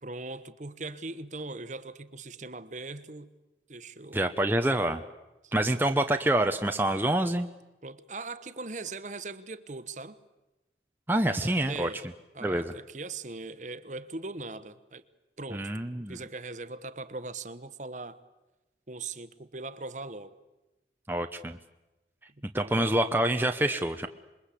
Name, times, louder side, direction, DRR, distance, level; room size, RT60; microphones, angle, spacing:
voice 1, 0.0-3.3 3.7-4.3 5.4-5.8 7.8-10.2 11.3-12.0 12.3-15.0 15.4-15.7 16.1-18.2 18.9-20.3 22.6-23.0, right 3 dB, 45° right, 1.1 m, -40 dB
voice 2, 4.1-5.0 5.5-7.5 11.1-11.9 12.4-12.7 15.5-16.2 21.1-21.6 22.5-24.1, right 1 dB, 10° right, 0.8 m, -26 dB
27.0 x 22.0 x 8.4 m
head